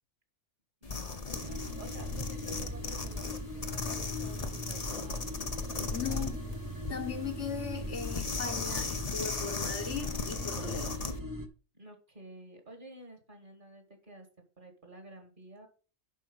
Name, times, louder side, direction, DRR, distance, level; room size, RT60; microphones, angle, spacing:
sound 1, 0.8-11.2, left 4 dB, 35° left, 0.9 m, -37 dB
voice 1, 0.8-5.3 6.1-6.5 11.7-14.3 14.6-15.7, right 2 dB, 45° right, 2.5 m, -51 dB
sound 2, 1.3-11.5, equal, 20° right, 0.9 m, -40 dB
voice 2, 5.9-6.4 6.9-11.0, left 7 dB, 80° left, 1.8 m, -38 dB
11.0 x 4.5 x 5.6 m
omnidirectional pair, 1.2 m